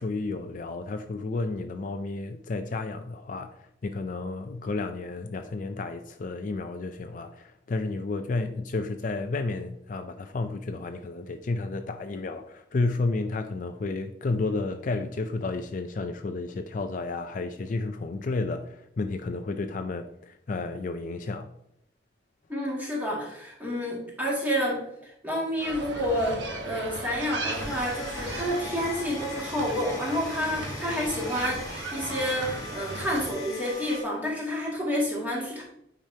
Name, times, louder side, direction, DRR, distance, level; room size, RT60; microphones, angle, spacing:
voice 1, 0.0-21.5, left 3 dB, 45° left, 7 dB, 0.4 m, -32 dB
voice 2, 22.5-35.6, equal, 10° right, -4 dB, 2.0 m, -29 dB
sound 1, 25.6-33.3, right 2 dB, 85° right, 1.3 m, -37 dB
sound 2, 27.5-34.0, left 2 dB, 20° left, 1.5 m, -40 dB
9.0 x 4.9 x 2.8 m, 0.75 s
head